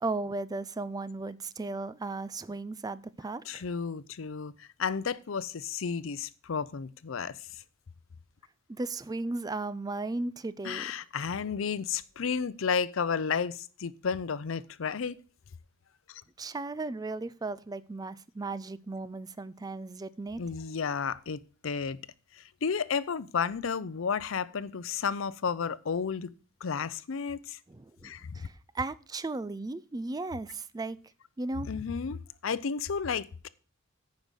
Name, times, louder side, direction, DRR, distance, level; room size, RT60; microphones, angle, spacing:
voice 1, 0.0-3.6 8.7-10.9 16.4-20.4 27.7-31.0 31.4-31.7, right 3 dB, 20° right, 0.4 m, -36 dB
voice 2, 3.5-7.6 10.6-15.2 16.1-16.2 20.4-22.0 22.3-26.3 26.6-27.6 28.0-28.4 31.6-33.5, left 6 dB, 75° left, 0.5 m, -32 dB
9.3 x 5.3 x 6.3 m
head